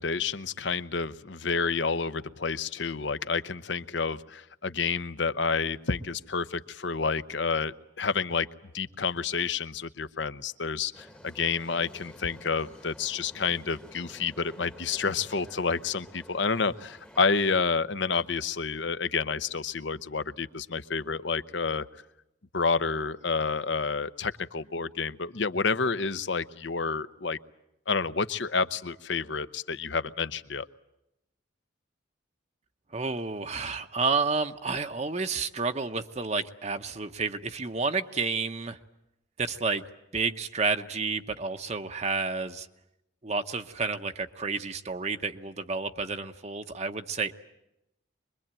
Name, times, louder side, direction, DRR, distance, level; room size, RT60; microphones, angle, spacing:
voice 1, 0.0-8.5 8.7-21.9 22.5-27.4 27.9-30.7, left 5 dB, 65° left, 13 dB, 0.9 m, -29 dB
sound 1, 10.9-17.6, equal, 5° left, 1.1 m, -50 dB
voice 2, 32.9-38.8 39.4-39.8 40.1-42.7 43.2-47.3, right 4 dB, 35° right, 7 dB, 0.9 m, -30 dB
24.5 x 22.0 x 8.9 m, 0.85 s
head